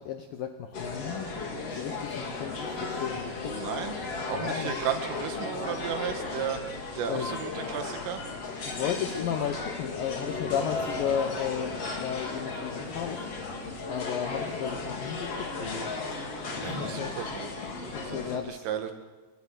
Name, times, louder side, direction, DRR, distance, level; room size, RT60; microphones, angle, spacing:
voice 1, 0.0-1.3 1.7-3.6 4.3-4.8 7.0-7.3 8.7-13.3 13.9-16.0 16.6-17.2 17.9-18.7, left 8 dB, 85° left, 7 dB, 2.0 m, -34 dB
sound 1, 0.7-18.4, left 3 dB, 35° left, 3.2 m, -35 dB
sound 2, 1.5-15.5, left 7 dB, 65° left, 5.0 m, -47 dB
voice 2, 3.6-3.9 4.3-6.6 7.0-8.2 16.6-17.5 18.0-18.2 18.5-18.9, right 9 dB, 90° right, 7 dB, 4.4 m, -34 dB
29.0 x 23.0 x 6.5 m, 1.3 s
omnidirectional pair, 5.6 m